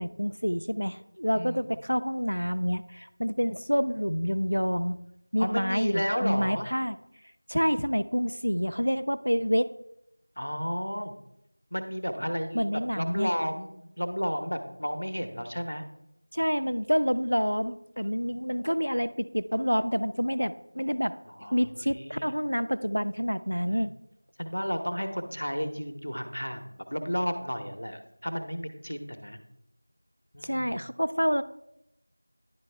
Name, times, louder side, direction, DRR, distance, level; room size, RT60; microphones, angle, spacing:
voice 1, 0.0-5.0 5.3-7.0 7.5-9.7 12.5-13.3 16.3-21.2 21.5-23.9 30.4-31.4, equal, 90° left, 13 dB, 0.4 m, -28 dB
voice 2, 1.3-1.7 5.4-6.7 10.4-11.1 11.7-15.8 21.3-22.3 23.7-23.8 24.4-29.4 30.3-30.8, equal, 70° left, 7 dB, 0.9 m, -32 dB
10.5 x 3.5 x 3.3 m, 0.82 s
figure-of-eight pair, 175°, 0 cm